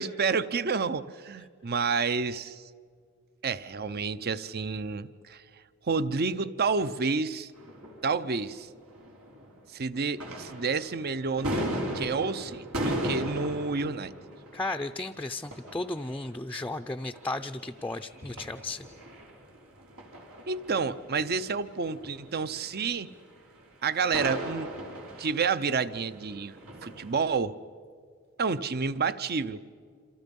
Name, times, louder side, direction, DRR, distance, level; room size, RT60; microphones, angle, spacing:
voice 1, 0.0-2.6 3.4-5.4 5.9-7.5 8.0-8.7 9.7-11.7 11.9-14.1 20.5-23.1 23.8-24.7 25.2-26.6 26.8-27.6 28.4-29.6, right 5 dB, 50° right, 14 dB, 0.7 m, -29 dB
sound 1, 7.5-9.6 9.9-27.3, equal, 90° right, 4.8 m, -38 dB
voice 2, 14.5-18.9, left 2 dB, 10° left, 5 dB, 0.5 m, -34 dB
28.0 x 27.0 x 5.4 m, 2.1 s
head